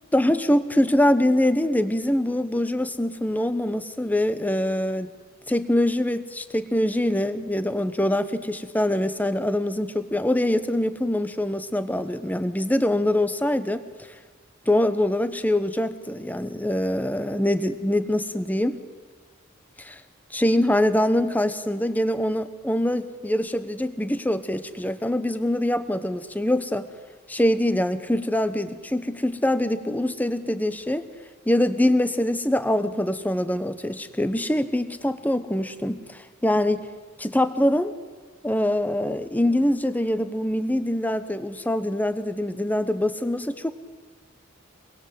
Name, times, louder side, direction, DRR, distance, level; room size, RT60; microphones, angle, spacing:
voice 1, 0.1-5.1 5.5-13.9 14.7-18.8 19.8-20.0 20.3-26.9 27.3-31.1 31.5-36.9 37.2-37.9 38.4-43.7, left 1 dB, 10° left, 11 dB, 1.0 m, -24 dB
25.5 x 21.0 x 7.9 m, 1.5 s
head